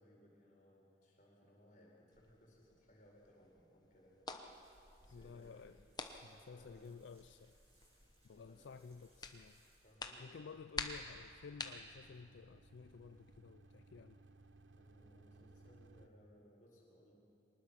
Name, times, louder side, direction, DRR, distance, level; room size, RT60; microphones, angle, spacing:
voice 1, 0.0-4.3 5.0-5.6 6.3-6.9 8.3-8.8 9.8-10.7 14.8-17.1, equal, 45° left, -2 dB, 4.7 m, -65 dB
sound 1, 2.1-13.4, left 3 dB, 20° left, 1.0 m, -51 dB
sound 2, 4.4-9.9, right 1 dB, 30° right, 7.4 m, -73 dB
voice 2, 5.1-5.8 6.2-7.6 8.2-9.6 10.2-14.2, left 5 dB, 75° left, 11 dB, 0.4 m, -54 dB
sound 3, 10.8-16.1, right 2 dB, 85° right, 0.9 m, -63 dB
23.5 x 20.0 x 5.9 m, 2.6 s
head